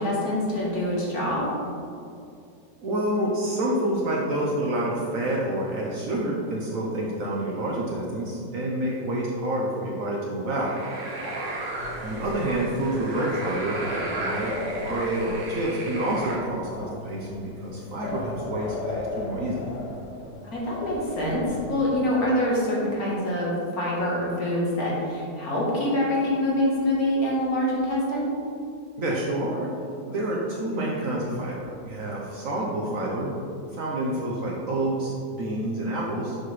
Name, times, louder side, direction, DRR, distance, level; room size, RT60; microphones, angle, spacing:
voice 1, 0.0-1.5 11.2-11.4 20.4-28.3, left 1 dB, 55° left, -4 dB, 1.7 m, -25 dB
voice 2, 2.8-10.7 12.0-14.5 14.8-19.7 29.0-29.7 30.1-33.3 33.7-36.4, right 1 dB, 60° right, -3 dB, 1.0 m, -28 dB
sound 1, 10.5-16.4, right 2 dB, 85° right, 1.7 m, -34 dB
sound 2, 11.8-22.4, left 3 dB, 75° left, 1.3 m, -38 dB
6.7 x 5.7 x 3.2 m, 2.5 s
omnidirectional pair, 1.9 m